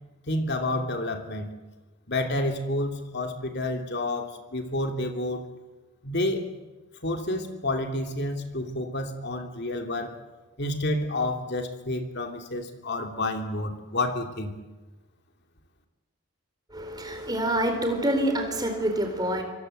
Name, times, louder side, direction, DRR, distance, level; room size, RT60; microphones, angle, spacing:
voice 1, 0.3-1.5 2.1-5.5 6.0-6.5 7.0-10.2 10.6-14.5, left 1 dB, 50° left, 4 dB, 3.0 m, -29 dB
voice 2, 16.7-19.4, right 1 dB, 20° right, 6 dB, 4.0 m, -26 dB
27.0 x 25.0 x 8.0 m, 1.2 s
head